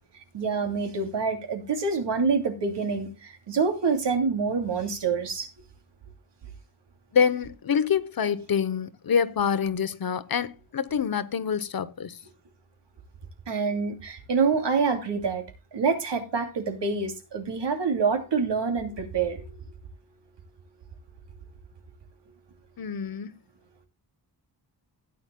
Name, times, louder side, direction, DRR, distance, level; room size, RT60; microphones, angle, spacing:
voice 1, 0.3-5.5 13.5-15.5 15.7-19.6, right 5 dB, 80° right, 2.8 m, -26 dB
voice 2, 7.1-12.2 22.8-23.3, left 7 dB, 55° left, 0.9 m, -26 dB
16.0 x 9.7 x 2.2 m
wide cardioid pair, 160°, 42 cm